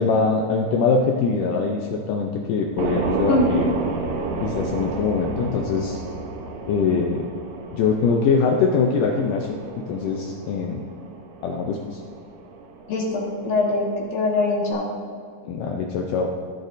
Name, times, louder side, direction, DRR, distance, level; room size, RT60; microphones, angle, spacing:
voice 1, 0.0-3.7 4.4-6.0 6.7-7.2 7.7-9.6 9.9-10.8 11.4-12.0 15.4-16.3, left 5 dB, 80° left, 1 dB, 2.0 m, -22 dB
sound 1, 2.8-14.7, right 4 dB, 75° right, 1.7 m, -32 dB
voice 2, 12.9-14.9, left 2 dB, 65° left, -3 dB, 2.6 m, -23 dB
15.0 x 6.3 x 2.6 m, 2.2 s
omnidirectional pair, 4.4 m